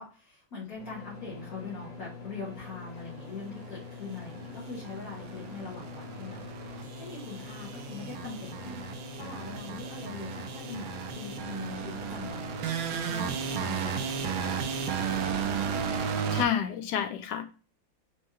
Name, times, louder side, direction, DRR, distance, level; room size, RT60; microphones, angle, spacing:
voice 1, 0.0-6.4 6.7-8.8 9.2-15.5, left 4 dB, 50° left, -5 dB, 1.7 m, -42 dB
sound 1, 0.8-15.5, left 4 dB, 30° left, 1.7 m, -44 dB
sound 2, 4.1-16.5, right 7 dB, 70° right, 1.0 m, -34 dB
voice 2, 16.3-17.4, left 8 dB, 75° left, 8 dB, 1.1 m, -29 dB
4.7 x 3.2 x 2.9 m, 0.34 s
omnidirectional pair, 2.1 m